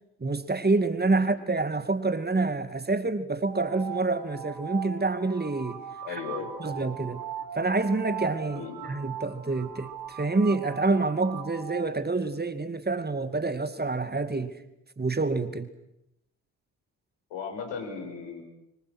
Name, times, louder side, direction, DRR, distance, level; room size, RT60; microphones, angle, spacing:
voice 1, 0.2-5.8 6.1-6.2 6.6-7.2 7.5-14.5 15.0-15.7, right 3 dB, 20° right, 2.5 m, -27 dB
sound 1, 3.4-11.9, right 8 dB, 55° right, 4.5 m, -40 dB
voice 2, 6.0-6.5 8.5-8.8 17.3-18.4, left 6 dB, 65° left, 6.7 m, -36 dB
29.5 x 25.0 x 6.3 m
figure-of-eight pair, 40°, 48 cm